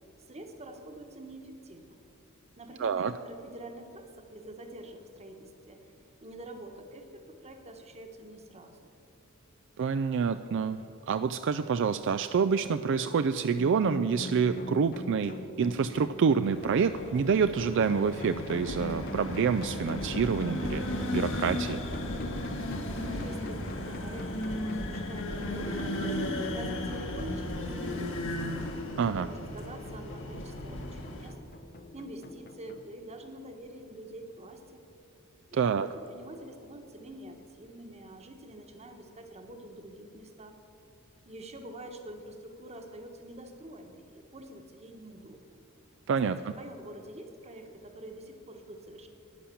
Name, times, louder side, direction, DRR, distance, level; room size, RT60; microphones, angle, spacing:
voice 1, 0.3-2.0 2.6-5.9 6.2-8.9 23.0-26.0 26.5-28.5 29.0-31.4 31.9-34.8 35.5-40.6 41.2-45.6 46.2-49.1, right 1 dB, 30° right, 5 dB, 1.3 m, -46 dB
voice 2, 2.8-3.1 9.8-10.8 11.1-21.8 29.0-29.3 35.5-35.9 46.1-46.4, right 6 dB, 60° right, 11 dB, 0.4 m, -27 dB
sound 1, 13.6-32.8, left 1 dB, 45° left, 0.8 m, -42 dB
sound 2, 16.4-31.3, left 1 dB, 65° left, 1.7 m, -36 dB
11.0 x 10.0 x 7.0 m, 2.9 s
head